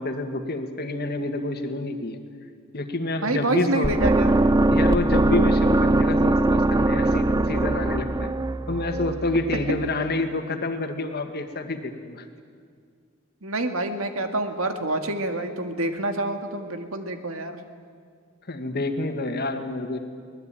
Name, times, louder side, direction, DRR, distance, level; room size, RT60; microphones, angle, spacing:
voice 1, 0.0-2.2 2.7-3.9 4.7-8.3 8.7-12.2 18.5-20.0, left 2 dB, 50° left, 6 dB, 1.9 m, -28 dB
voice 2, 3.2-4.3 13.4-17.6, right 2 dB, 75° right, 6 dB, 2.1 m, -27 dB
sound 1, 3.8-9.9, right 2 dB, 20° right, 0.5 m, -21 dB
24.0 x 19.0 x 9.1 m, 2.1 s
head